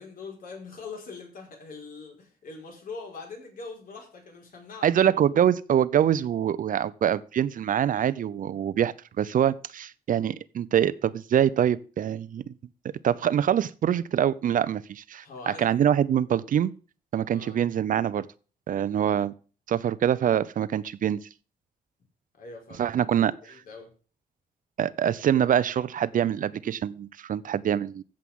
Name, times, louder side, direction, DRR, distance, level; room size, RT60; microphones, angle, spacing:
voice 1, 0.0-5.2 15.2-15.7 17.3-17.6 22.4-23.9, left 4 dB, 65° left, 4.8 m, -42 dB
voice 2, 4.8-12.5 13.0-16.7 17.1-18.3 18.7-19.3 19.7-21.2 22.8-23.6 24.8-28.0, right 9 dB, 60° right, 0.6 m, -24 dB
14.5 x 7.6 x 3.7 m
wide cardioid pair, 140°, 16 cm